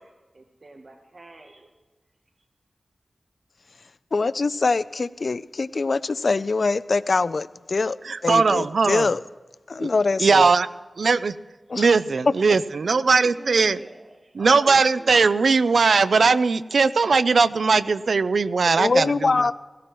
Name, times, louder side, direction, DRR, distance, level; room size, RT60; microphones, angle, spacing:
voice 1, 0.3-1.7 13.2-15.4, right 2 dB, 50° right, 3 dB, 1.1 m, -44 dB
voice 2, 4.1-8.0 8.2-9.2 9.7-10.5 11.7-11.9 18.8-19.5, left 3 dB, 60° left, 17 dB, 0.4 m, -23 dB
voice 3, 8.0-9.1 9.8-9.9 10.2-10.7 11.0-11.3 11.8-13.8 14.3-19.5, right 4 dB, 85° right, 16 dB, 0.4 m, -19 dB
17.5 x 17.0 x 3.1 m, 1.2 s
wide cardioid pair, 75°, 0 cm